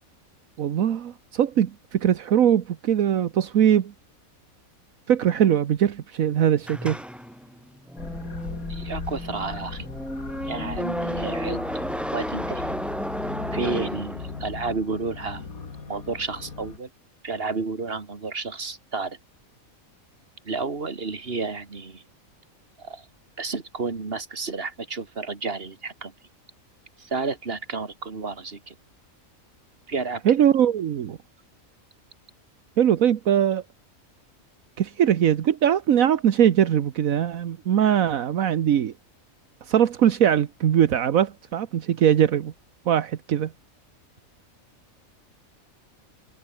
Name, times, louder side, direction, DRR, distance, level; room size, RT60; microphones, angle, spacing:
voice 1, 0.6-3.9 5.1-7.0 30.2-31.2 32.8-33.6 34.8-38.9 39.7-42.5 42.9-43.5, right 9 dB, 75° right, 1.4 m, -21 dB
sound 1, 6.6-14.7, equal, ahead, 6.6 m, -33 dB
sound 2, 8.0-16.8, left 4 dB, 90° left, 2.9 m, -38 dB
voice 2, 8.7-9.9 10.5-12.7 13.5-15.5 15.9-16.9 17.2-19.2 20.4-22.0 22.8-23.1 23.4-26.1 27.0-28.7 29.9-30.2, right 4 dB, 45° right, 2.5 m, -31 dB
omnidirectional pair, 1.4 m